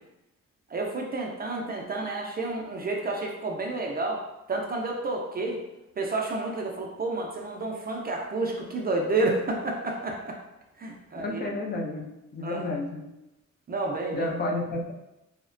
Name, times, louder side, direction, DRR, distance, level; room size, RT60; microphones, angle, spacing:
voice 1, 0.7-5.6 6.0-10.4 10.8-11.4 12.4-12.7 13.7-14.3, right 2 dB, 30° right, 0 dB, 0.4 m, -30 dB
voice 2, 11.2-13.1 14.1-14.9, left 2 dB, 35° left, 0 dB, 0.4 m, -31 dB
2.8 x 2.1 x 2.5 m, 0.93 s
cardioid pair, 100°, 30 cm